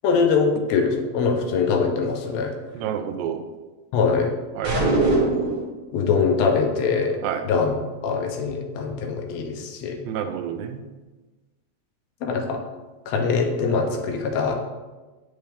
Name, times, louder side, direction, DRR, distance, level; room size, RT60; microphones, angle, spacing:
voice 1, 0.0-2.5 3.9-4.3 5.9-7.2 7.4-7.8 8.0-10.0 12.2-12.6 13.1-14.5, left 5 dB, 75° left, 3 dB, 1.8 m, -22 dB
voice 2, 2.8-3.4 4.6-5.2 7.2-7.4 10.1-10.8, right 8 dB, 80° right, 8 dB, 1.9 m, -29 dB
sound 1, 4.6-5.7, right 2 dB, 45° right, 1.2 m, -20 dB
6.6 x 4.4 x 3.4 m, 1.2 s
omnidirectional pair, 3.3 m